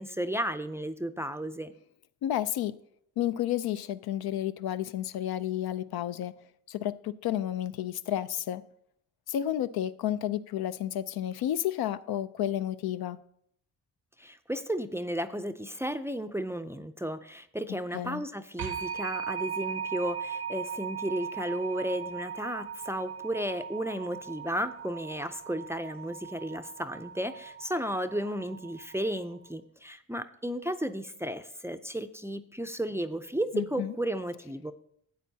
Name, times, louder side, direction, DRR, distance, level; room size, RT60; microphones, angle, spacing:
voice 1, 0.0-1.7 14.2-34.7, right 1 dB, 5° right, 11 dB, 0.4 m, -34 dB
voice 2, 2.2-2.7 3.2-6.3 6.7-8.6 9.3-13.2 17.9-18.2 33.5-33.9, left 11 dB, 65° left, 13 dB, 0.5 m, -31 dB
sound 1, 18.6-29.2, right 7 dB, 65° right, 0.7 m, -39 dB
12.5 x 8.3 x 2.8 m, 0.70 s
supercardioid pair, 60°, 40 cm